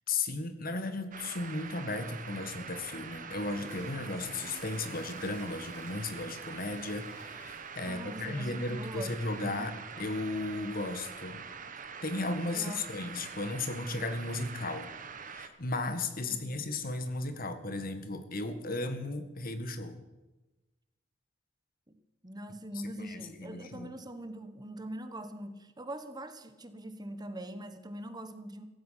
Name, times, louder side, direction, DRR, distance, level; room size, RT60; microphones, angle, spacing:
voice 1, 0.1-11.4 12.0-14.9 15.3-20.0 23.0-23.9, left 2 dB, 50° left, 9 dB, 1.7 m, -35 dB
sound 1, 1.1-15.5, right 6 dB, 45° right, 1.3 m, -44 dB
Toilet flush, 3.4-10.9, left 2 dB, 75° left, 3.1 m, -55 dB
voice 2, 7.9-9.7 12.5-12.8 16.3-16.8 21.9-28.6, right 1 dB, 20° right, 10 dB, 1.2 m, -43 dB
16.5 x 15.0 x 5.8 m, 1.1 s
head